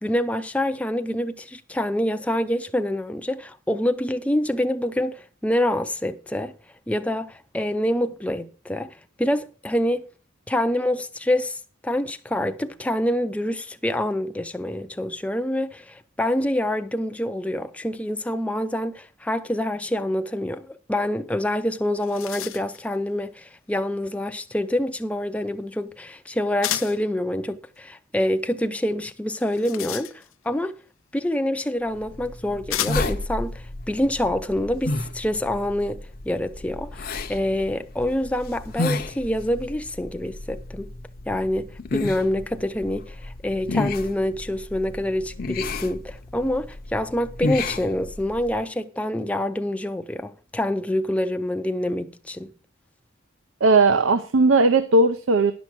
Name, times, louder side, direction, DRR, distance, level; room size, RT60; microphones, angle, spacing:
voice 1, 0.0-6.5 6.9-10.0 10.5-30.1 30.4-30.8 31.1-40.9 41.3-52.5, left 1 dB, 5° left, 0.4 m, -26 dB
sound 1, 21.5-21.6 21.8-22.9 26.6-27.1 29.3-30.5 31.6-31.7 32.7-33.2, left 13 dB, 85° left, 0.5 m, -32 dB
sound 2, 32.0-48.6, left 2 dB, 45° left, 0.7 m, -32 dB
voice 2, 53.6-55.5, right 3 dB, 85° right, 0.6 m, -17 dB
11.0 x 6.0 x 6.0 m
head